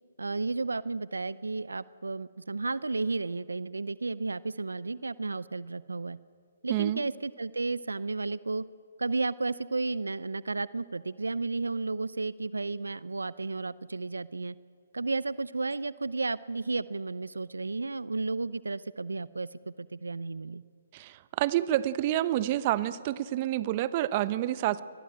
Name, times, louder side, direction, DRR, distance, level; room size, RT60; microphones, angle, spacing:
voice 1, 0.2-6.2 6.6-8.6 9.0-14.6 14.9-20.6, right 3 dB, 85° right, 19 dB, 0.6 m, -33 dB
voice 2, 6.7-7.1 20.9-24.8, right 13 dB, 35° right, 16 dB, 0.9 m, -28 dB
23.0 x 21.5 x 8.8 m, 2.1 s
figure-of-eight pair, 140°, 0 cm